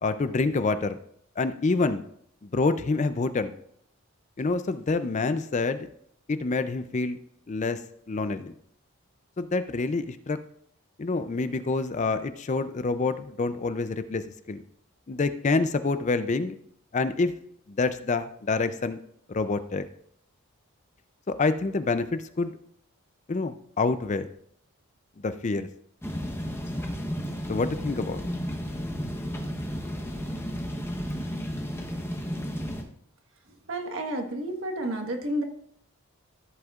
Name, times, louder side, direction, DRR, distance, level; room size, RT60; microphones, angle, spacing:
voice 1, 0.0-1.0 1.4-2.0 2.4-3.5 4.4-5.9 6.3-7.2 7.5-7.8 8.1-8.5 9.4-10.4 11.0-14.6 15.1-16.6 16.9-17.3 17.7-19.0 19.3-19.8 21.3-22.5 23.3-24.3 25.2-25.7 27.5-28.2, left 3 dB, 35° left, 11 dB, 0.4 m, -27 dB
sound 1, 26.0-32.8, equal, 10° left, 0.9 m, -33 dB
voice 2, 33.7-35.4, right 1 dB, 60° right, 4 dB, 1.4 m, -30 dB
14.0 x 7.9 x 2.4 m, 0.68 s
head